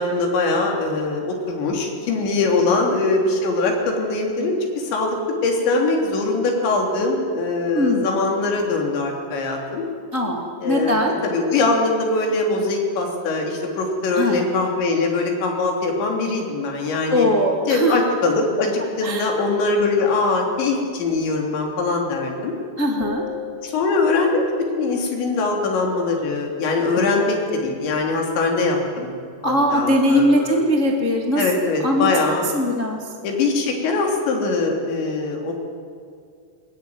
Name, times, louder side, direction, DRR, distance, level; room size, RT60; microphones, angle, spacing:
voice 1, 0.0-5.2 5.4-9.8 10.6-17.3 17.7-22.5 23.6-29.1 29.4-30.6 31.4-32.5 33.2-35.5, left 3 dB, 65° left, 1 dB, 5.5 m, -22 dB
voice 2, 7.7-8.1 10.1-11.1 14.1-14.6 17.1-17.9 19.0-19.3 22.8-23.2 26.9-27.3 29.4-31.4 31.8-32.1 32.5-33.1, equal, 45° left, 0 dB, 0.9 m, -21 dB
sound 1, 23.0-25.3, left 4 dB, 70° right, 4.2 m, -37 dB
23.0 x 21.5 x 9.6 m, 2.2 s
omnidirectional pair, 5.6 m